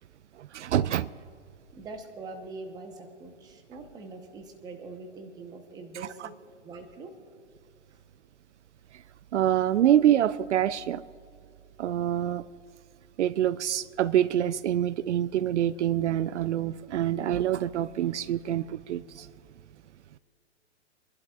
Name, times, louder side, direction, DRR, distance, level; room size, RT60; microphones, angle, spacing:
voice 1, 0.4-1.1 6.2-6.3 9.3-11.0 11.8-12.4 13.2-19.3, right 11 dB, 70° right, 18 dB, 0.5 m, -26 dB
voice 2, 1.7-6.3 6.6-7.2 7.9-8.0, right 3 dB, 10° right, 5 dB, 0.9 m, -43 dB
29.5 x 11.5 x 2.4 m, 2.3 s
hypercardioid pair, 145°, 36 cm